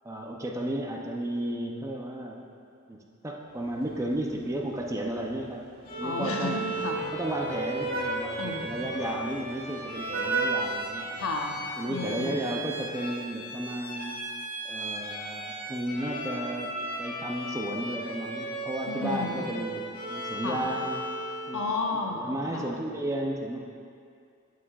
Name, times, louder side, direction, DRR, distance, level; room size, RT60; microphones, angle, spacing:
voice 1, 0.0-2.4 2.9-5.6 6.0-6.6 7.1-11.2 11.8-14.2 14.6-16.7 17.0-21.1 21.5-21.7 21.9-23.6, right 1 dB, 15° right, 0 dB, 0.5 m, -33 dB
Vehicle horn car horn honking, 3.6-11.7, right 3 dB, 45° right, 0.8 m, -37 dB
Bowed string instrument, 5.8-21.6, right 1 dB, 40° left, 1.3 m, -36 dB
voice 2, 6.0-7.1 8.4-8.9 11.2-11.6 11.9-12.4 18.9-19.4 20.4-20.7 21.5-22.3 22.5-22.7, left 3 dB, 80° left, 1 dB, 0.7 m, -32 dB
8.3 x 7.6 x 2.3 m, 2.3 s
head